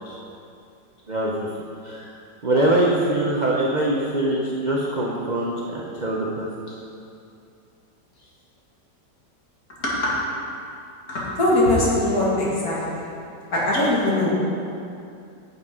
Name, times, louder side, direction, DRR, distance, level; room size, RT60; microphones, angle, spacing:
voice 1, 1.1-1.5 1.8-2.1 2.4-6.5, right 1 dB, 65° right, -4 dB, 0.4 m, -23 dB
voice 2, 9.8-10.3 11.1-13.0 13.5-14.3, left 1 dB, 55° left, -6 dB, 2.4 m, -21 dB
9.8 x 7.4 x 3.7 m, 2.5 s
omnidirectional pair, 2.0 m